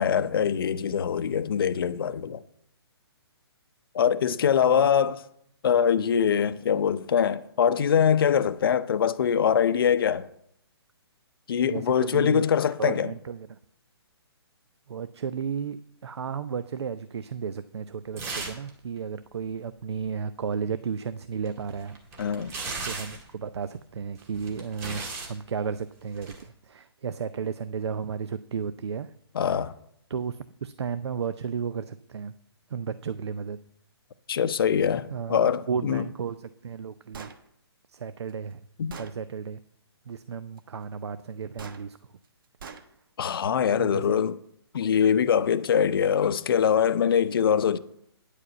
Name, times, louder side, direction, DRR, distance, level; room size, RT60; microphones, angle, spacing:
voice 1, 0.0-2.4 3.9-5.2 5.6-10.3 11.5-13.1 22.2-22.5 29.3-29.7 34.3-36.1 38.8-39.0 43.2-44.4 44.7-47.8, left 8 dB, 60° left, 0.6 m, -23 dB
voice 2, 11.6-12.4 12.8-13.6 14.9-22.0 22.8-29.1 30.1-32.3 32.7-33.6 35.1-37.3 37.9-38.6 39.0-39.6 40.1-42.0 43.8-44.3, right 6 dB, 75° right, 0.6 m, -33 dB
sound 1, 18.2-18.7 19.0-19.1 21.4-23.3 24.2-25.3 26.1-26.4, right 3 dB, 20° right, 1.9 m, -36 dB
Gunshot gunfire, 37.1-37.4 38.3-38.4 38.9-39.1 41.6-41.8 42.6-42.8, right 5 dB, 55° right, 1.2 m, -41 dB
9.9 x 4.9 x 7.8 m
hypercardioid pair, 155°, 14 cm